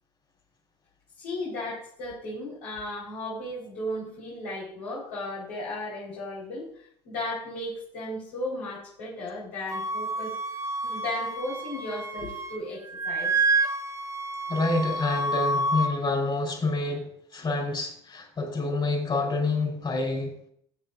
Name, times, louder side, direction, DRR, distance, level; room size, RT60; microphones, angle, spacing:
voice 1, 1.2-6.7 7.0-10.3 10.8-13.4, left 1 dB, 70° left, -7 dB, 4.5 m, -35 dB
Wind instrument woodwind instrument, 9.7-12.6 12.9-15.9, right 2 dB, 20° right, 1.2 m, -29 dB
voice 2, 14.5-17.0 17.3-20.3, left 3 dB, 30° left, 3 dB, 4.3 m, -27 dB
19.0 x 8.5 x 2.6 m, 0.63 s
hypercardioid pair, 70°, 15 cm